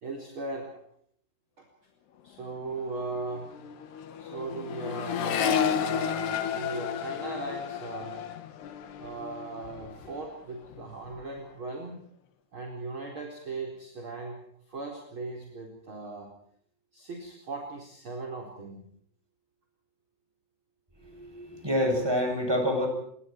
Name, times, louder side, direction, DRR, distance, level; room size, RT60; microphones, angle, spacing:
voice 1, 0.0-0.7 1.6-1.7 2.2-3.6 4.2-8.2 9.0-12.0 12.5-16.3 16.9-18.8, right 3 dB, 30° right, 1 dB, 4.8 m, -38 dB
Accelerating revving vroom, 2.3-2.5 2.8-10.3 10.6-11.2, left 8 dB, 85° left, 4.1 m, -32 dB
voice 2, 21.0-22.9, equal, 5° right, 3 dB, 7.8 m, -27 dB
29.0 x 25.5 x 4.6 m, 0.66 s
omnidirectional pair, 4.7 m